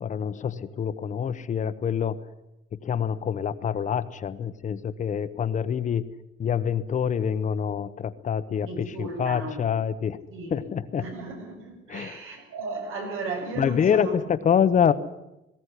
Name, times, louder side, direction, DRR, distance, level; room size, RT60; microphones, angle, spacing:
voice 1, 0.0-2.2 2.8-6.0 6.4-10.2 10.5-11.1 11.9-12.2 13.6-14.9, left 8 dB, 35° left, 13 dB, 1.0 m, -26 dB
voice 2, 8.7-9.6 10.3-10.6 11.0-14.2, right 3 dB, 85° right, 3 dB, 7.3 m, -35 dB
19.5 x 17.5 x 10.0 m, 0.92 s
cardioid pair, 175°, 21 cm